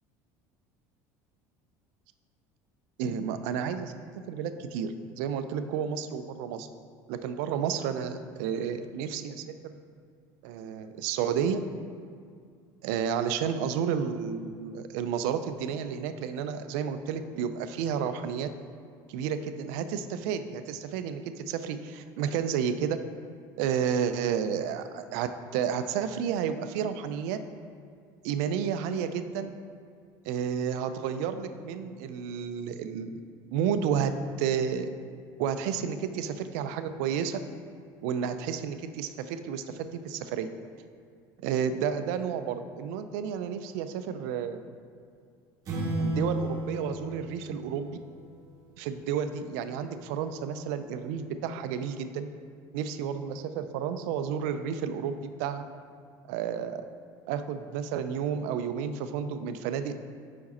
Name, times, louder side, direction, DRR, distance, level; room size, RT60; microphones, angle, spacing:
voice 1, 3.0-3.9 4.3-6.7 7.1-9.7 10.4-11.6 12.8-18.5 19.1-23.0 23.6-27.4 28.2-29.5 30.3-33.2 33.5-34.1 34.4-34.9 35.4-37.4 38.0-40.5 41.4-44.6 46.0-48.0 48.8-52.3 52.7-55.6 56.3-56.9 57.3-59.9, right 7 dB, 80° right, 10 dB, 0.4 m, -31 dB
sound 1, 45.7-48.3, right 1 dB, 40° right, 1.0 m, -33 dB
5.2 x 4.8 x 4.1 m, 2.2 s
cardioid pair, 145°, 9 cm